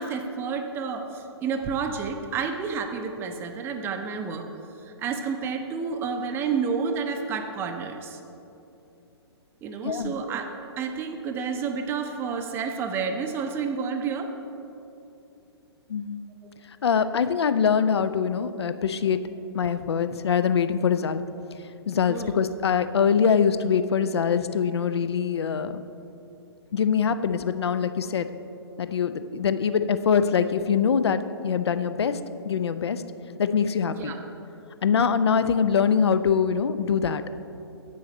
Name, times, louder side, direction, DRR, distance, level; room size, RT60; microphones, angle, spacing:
voice 1, 0.0-4.5 4.8-8.2 9.6-10.5 10.8-14.3 16.4-16.5 22.1-22.3 33.9-34.2, right 5 dB, 15° right, 5 dB, 0.5 m, -30 dB
voice 2, 9.8-10.1 15.9-16.2 16.8-19.2 19.5-21.2 21.9-25.8 26.7-28.3 28.8-32.2 32.5-33.0 33.4-34.1 34.8-37.2, left 7 dB, 70° left, 12 dB, 0.4 m, -23 dB
7.9 x 6.3 x 4.2 m, 2.8 s
figure-of-eight pair, 125°, 14 cm